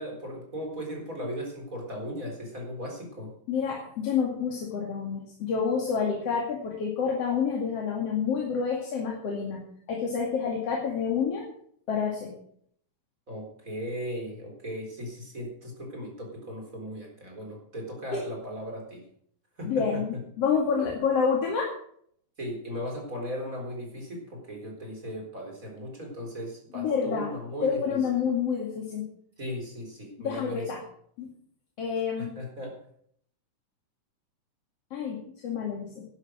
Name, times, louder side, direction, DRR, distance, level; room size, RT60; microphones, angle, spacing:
voice 1, 0.0-3.3 13.3-19.0 19.6-20.0 22.4-28.0 29.4-30.7 32.2-32.7, equal, 20° right, 1 dB, 4.2 m, -37 dB
voice 2, 3.5-11.4 11.9-12.3 18.1-18.3 19.6-21.7 26.7-27.3 27.6-29.1 30.2-30.8 31.2-31.3 31.8-32.3 34.9-36.0, left 6 dB, 45° left, -1 dB, 3.0 m, -28 dB
11.5 x 11.0 x 6.3 m, 0.63 s
omnidirectional pair, 4.3 m